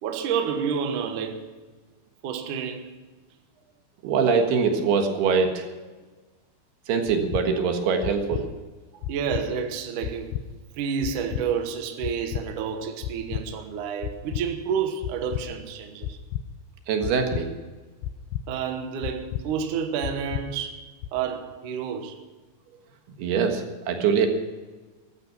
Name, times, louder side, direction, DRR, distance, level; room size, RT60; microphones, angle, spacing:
voice 1, 0.0-1.5 2.2-2.9 9.1-10.4 10.8-16.2 18.5-22.2, right 7 dB, 65° right, 2.5 m, -29 dB
voice 2, 4.0-5.7 6.9-8.5 16.9-17.5 23.2-24.3, right 5 dB, 80° right, 3.6 m, -23 dB
sound 1, 7.1-7.4 8.0-8.4 9.0-9.4 10.0-10.4 11.0-11.4 12.0-12.4 13.0-13.4 14.0-14.4 15.0-15.4 16.0-16.4 17.0-17.4 18.0-18.4 19.0-19.4 20.0-20.4 21.0-21.1, left 12 dB, 85° left, 2.7 m, -31 dB
14.5 x 12.0 x 6.0 m
omnidirectional pair, 4.5 m